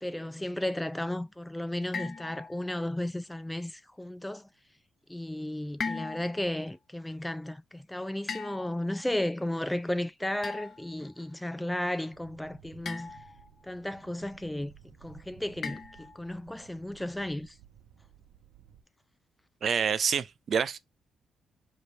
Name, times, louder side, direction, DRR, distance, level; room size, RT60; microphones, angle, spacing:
voice 1, 0.0-4.4 5.1-13.1 13.6-14.7 15.0-17.5, left 1 dB, 5° left, 0.5 m, -34 dB
sound 1, 1.9-2.9 5.8-6.5 8.3-9.0 10.4-10.9 12.9-13.5 15.6-16.3, left 5 dB, 50° left, 0.6 m, -38 dB
sound 2, 6.7-6.8 7.0-7.2 9.4-11.5, right 1 dB, 30° left, 2.4 m, -61 dB
sound 3, 12.1-18.8, right 9 dB, 90° right, 0.8 m, -56 dB
voice 2, 19.6-20.8, right 6 dB, 55° right, 0.5 m, -27 dB
5.0 x 3.0 x 3.3 m
cardioid pair, 105°, 0 cm